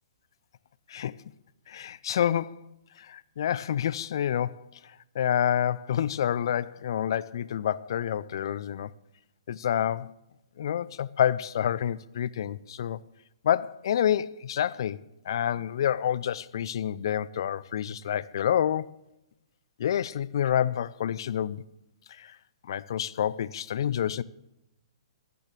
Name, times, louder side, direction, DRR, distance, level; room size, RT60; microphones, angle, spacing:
voice 1, 1.7-2.6 3.0-4.7 5.1-8.9 9.5-10.1 10.6-13.0 13.4-15.0 15.3-18.9 19.8-21.6 22.1-22.4 22.7-24.2, left 10 dB, 55° left, 0.5 m, -28 dB
26.5 x 9.3 x 3.3 m
figure-of-eight pair, 125°, 3 cm